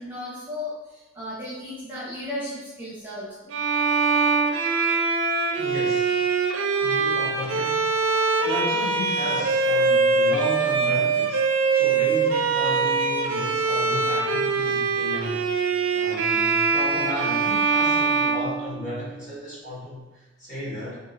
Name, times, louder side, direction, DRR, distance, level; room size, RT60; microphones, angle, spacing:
voice 1, 0.0-3.5, left 1 dB, 10° right, -9 dB, 0.8 m, -35 dB
Bowed string instrument, 3.5-19.2, right 4 dB, 80° right, 0.4 m, -23 dB
voice 2, 5.6-6.2 6.8-7.9 8.4-21.0, left 1 dB, 40° left, -9 dB, 1.4 m, -34 dB
3.6 x 2.7 x 2.6 m, 1.1 s
head